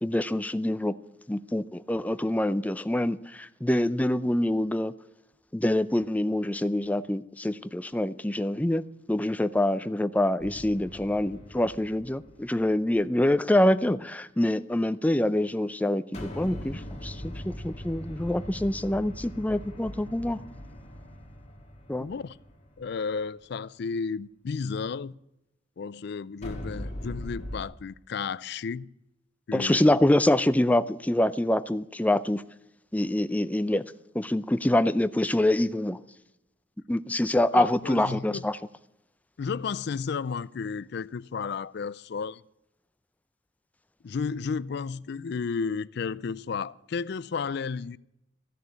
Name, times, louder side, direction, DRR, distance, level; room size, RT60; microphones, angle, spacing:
voice 1, 0.0-0.9 1.3-4.9 5.5-8.8 9.1-20.4 21.9-22.1 29.5-32.4 32.9-33.8 34.1-36.0 36.9-38.6, left 1 dB, 10° left, 0.5 m, -25 dB
sound 1, 10.4-12.9 16.1-23.4 26.4-27.6, equal, 35° left, 1.9 m, -41 dB
voice 2, 22.0-22.4 22.8-25.1 25.8-28.9 29.5-29.8 37.5-38.4 39.4-42.4 44.0-48.0, left 5 dB, 60° left, 0.4 m, -33 dB
14.5 x 6.8 x 9.1 m
head